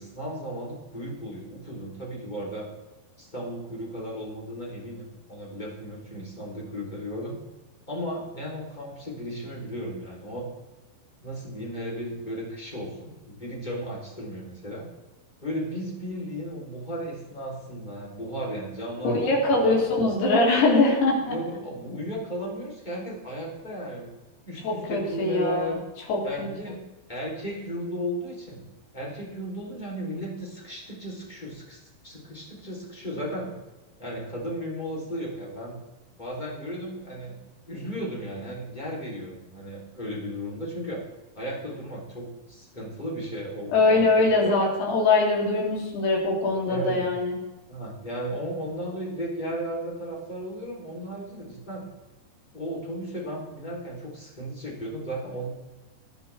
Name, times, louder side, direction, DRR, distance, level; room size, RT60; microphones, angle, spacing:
voice 1, 0.0-2.7 3.2-7.4 7.9-10.5 11.2-14.9 15.4-19.8 21.2-24.1 24.4-25.8 26.2-26.8 27.1-28.6 28.9-33.5 34.0-35.8 36.2-37.3 37.7-41.0 41.4-44.5 46.7-47.2 47.7-51.8 52.5-55.5, equal, 10° left, -4 dB, 3.5 m, -35 dB
voice 2, 19.0-21.3 24.6-25.8 26.1-26.2 26.7-26.8 43.7-47.4, left 3 dB, 80° left, -2 dB, 5.2 m, -22 dB
19.5 x 10.5 x 3.6 m, 1.1 s
omnidirectional pair, 4.6 m